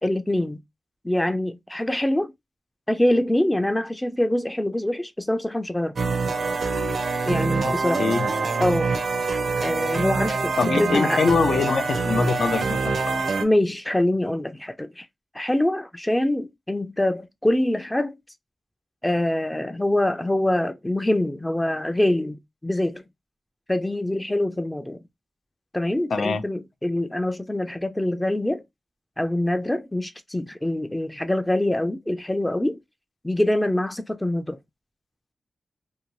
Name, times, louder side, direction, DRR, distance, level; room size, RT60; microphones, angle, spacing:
voice 1, 0.0-0.6 1.0-2.3 2.9-6.0 7.3-8.0 8.6-8.9 9.6-11.2 13.4-15.1 15.3-18.2 19.0-23.0 23.7-25.0 25.7-28.6 29.2-32.8 33.2-34.6, left 1 dB, 15° left, 0.3 m, -24 dB
sound 1, 6.0-13.4, right 4 dB, 70° right, 0.5 m, -25 dB
voice 2, 7.6-8.3 10.6-13.0 26.1-26.4, left 4 dB, 80° left, 0.5 m, -23 dB
2.6 x 2.2 x 2.9 m
cardioid pair, 75°, 0 cm